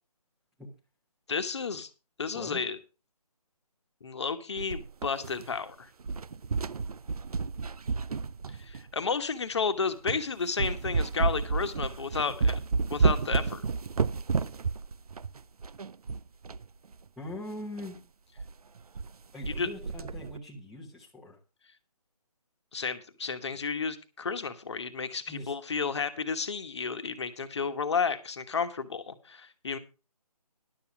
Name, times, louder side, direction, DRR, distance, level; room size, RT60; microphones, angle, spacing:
voice 1, 1.3-1.9 2.2-2.8 4.0-5.9 8.6-12.6 12.9-13.6 19.5-19.7 22.7-29.8, left 5 dB, 45° left, 9 dB, 1.2 m, -32 dB
sound 1, 4.6-5.7 6.0-9.0 9.6-9.7 10.1-10.3 10.6-16.7 16.9-17.0 17.3-17.4 17.8-18.0 18.4-18.5 18.8-19.1 19.4-20.4, right 4 dB, 70° right, 0.6 m, -31 dB
voice 2, 17.2-18.0 19.3-21.4 25.3-25.5, left 1 dB, ahead, -7 dB, 1.0 m, -41 dB
11.5 x 7.1 x 5.9 m, 0.32 s
figure-of-eight pair, 160°, 20 cm